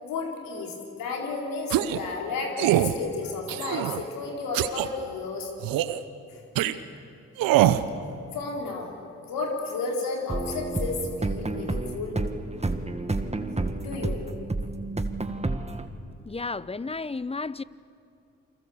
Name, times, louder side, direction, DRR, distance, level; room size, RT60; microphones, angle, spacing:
voice 1, 0.0-5.5 6.3-6.4 8.3-8.9 9.3-12.2 13.8-14.2, left 4 dB, 80° left, 4.2 m, -32 dB
sound 1, 1.7-2.0 2.6-2.9 3.5-4.0 4.5-4.9 5.6-6.0 6.6-6.7 7.4-7.8, right 13 dB, 80° right, 0.9 m, -23 dB
sound 2, 10.3-15.9, right 2 dB, 20° right, 1.9 m, -30 dB
voice 2, 16.3-17.6, left 3 dB, 15° left, 0.8 m, -32 dB
28.5 x 22.5 x 7.2 m
hypercardioid pair, 40°, 34 cm